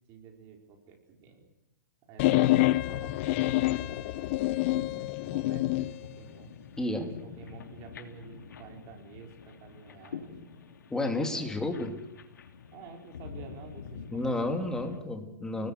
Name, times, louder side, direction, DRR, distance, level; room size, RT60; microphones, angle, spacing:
voice 1, 0.1-1.5 2.1-4.6 5.3-6.5 7.0-10.3 11.2-11.7 12.7-15.0, right 6 dB, 30° right, 3 dB, 4.7 m, -49 dB
sound 1, 2.2-5.9, left 17 dB, 45° left, 0.8 m, -27 dB
sound 2, 3.7-15.0, left 6 dB, 90° left, 3.3 m, -47 dB
voice 2, 6.8-7.1 10.9-12.0 14.1-15.7, left 2 dB, 5° left, 5 dB, 2.8 m, -31 dB
29.5 x 20.0 x 8.0 m, 0.86 s
hypercardioid pair, 150°, 10 cm